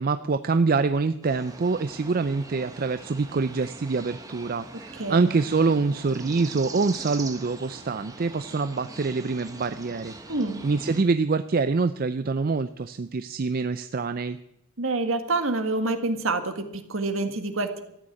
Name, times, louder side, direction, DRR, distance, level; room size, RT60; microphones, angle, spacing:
voice 1, 0.0-10.1 10.6-14.4, right 4 dB, 40° right, 12 dB, 0.4 m, -25 dB
sound 1, 1.2-11.0, right 2 dB, 15° right, 1.4 m, -42 dB
voice 2, 5.0-5.3 10.3-10.6 14.8-17.8, right 2 dB, 60° right, 8 dB, 1.7 m, -27 dB
14.0 x 9.2 x 8.5 m, 0.82 s
head